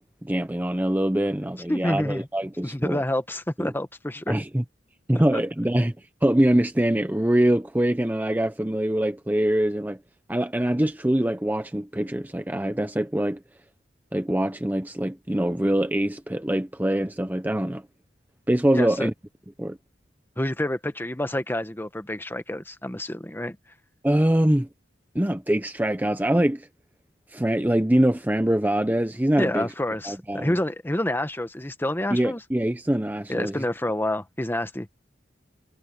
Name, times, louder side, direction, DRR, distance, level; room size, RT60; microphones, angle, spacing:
voice 1, 0.2-3.0 3.6-3.7 4.3-4.6 5.1-5.9 6.2-10.0 10.3-13.4 14.1-17.8 18.5-19.1 19.6-19.8 24.0-24.7 25.1-26.7 27.3-29.7 30.0-30.5 32.1-33.6, right 1 dB, 10° right, 0.6 m, -23 dB
voice 2, 1.7-2.3 2.6-4.3 5.3-5.4 18.7-19.1 20.4-23.6 29.4-32.4 33.3-34.9, left 1 dB, 10° left, 1.1 m, -28 dB
head